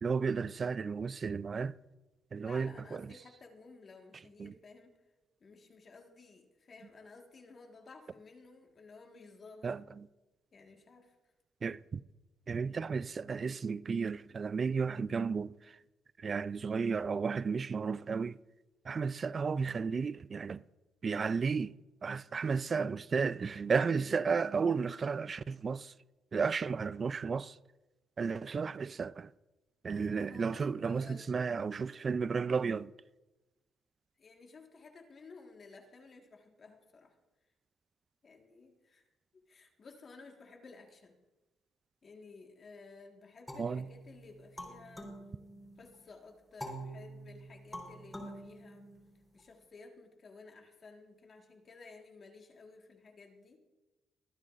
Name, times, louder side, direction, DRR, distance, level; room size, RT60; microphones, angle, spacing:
voice 1, 0.0-1.7 2.3-3.0 4.4-4.5 9.6-9.8 11.6-12.0 12.5-15.5 16.2-18.4 18.9-20.6 21.0-21.7 22.0-25.9 26.3-27.5 28.2-29.3 29.8-32.9 43.6-43.8, right 5 dB, 40° right, 0.3 m, -33 dB
voice 2, 2.4-4.9 5.4-9.7 10.5-11.1 12.7-12.8 29.9-31.6 34.2-37.2 38.2-39.0 39.5-41.1 42.0-45.1 45.8-48.9 49.3-53.6, left 4 dB, 45° left, 1.6 m, -55 dB
sound 1, 43.5-46.0 46.6-49.4, right 1 dB, 10° left, 3.7 m, -46 dB
23.5 x 9.7 x 2.5 m
cardioid pair, 90°, 0 cm